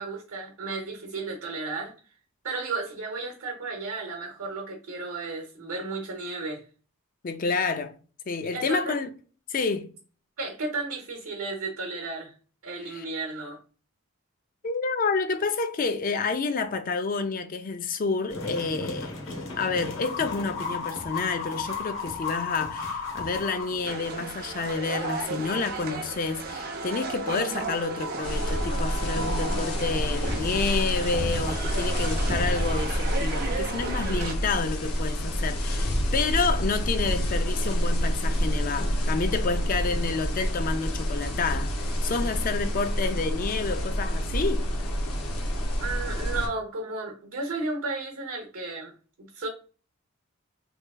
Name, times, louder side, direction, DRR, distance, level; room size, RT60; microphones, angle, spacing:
voice 1, 0.0-1.9 2.4-6.6 8.5-9.0 10.4-12.3 12.6-13.6 45.8-48.9 49.2-49.5, right 3 dB, 85° right, 0.8 m, -33 dB
voice 2, 7.2-8.0 8.3-9.1 9.5-9.9 12.8-13.0 14.6-19.1 19.6-44.7, left 4 dB, 40° left, 0.4 m, -29 dB
sound 1, 18.3-24.3, left 4 dB, 60° left, 1.0 m, -35 dB
sound 2, 23.8-34.3, right 3 dB, 45° right, 0.6 m, -34 dB
sound 3, 28.2-46.5, equal, 85° left, 0.8 m, -28 dB
3.5 x 3.2 x 2.3 m
head